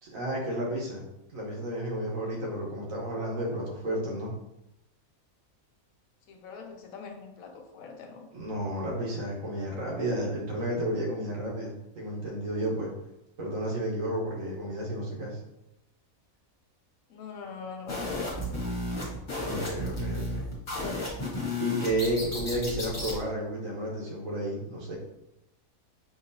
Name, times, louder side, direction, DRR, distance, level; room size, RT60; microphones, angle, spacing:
voice 1, 0.0-4.3 8.3-12.9 13.4-15.4 19.4-20.5 21.6-25.0, right 1 dB, 70° right, -2 dB, 1.5 m, -32 dB
voice 2, 6.3-8.3 17.1-18.7 20.8-20.9, left 5 dB, 80° left, 2 dB, 1.1 m, -42 dB
sound 1, 17.9-23.2, left 1 dB, 35° left, 1.3 m, -33 dB
5.2 x 2.8 x 2.7 m, 0.86 s
omnidirectional pair, 1.5 m